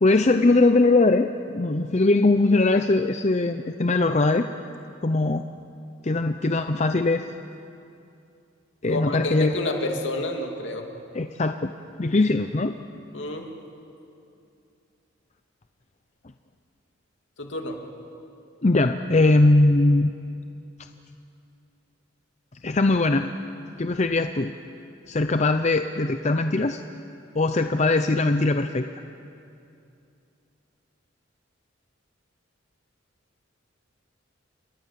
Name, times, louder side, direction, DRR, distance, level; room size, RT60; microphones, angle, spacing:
voice 1, 0.0-4.5 5.0-5.4 6.0-7.2 8.8-9.6 11.1-11.7 12.0-12.7 18.6-20.1 22.6-23.3 23.8-24.5 25.1-26.8 27.3-28.9, left 2 dB, 35° left, 8 dB, 0.6 m, -21 dB
voice 2, 8.9-10.9 13.1-13.5 17.4-17.8, left 2 dB, 65° left, 3 dB, 2.7 m, -29 dB
28.0 x 22.0 x 7.6 m, 2.6 s
head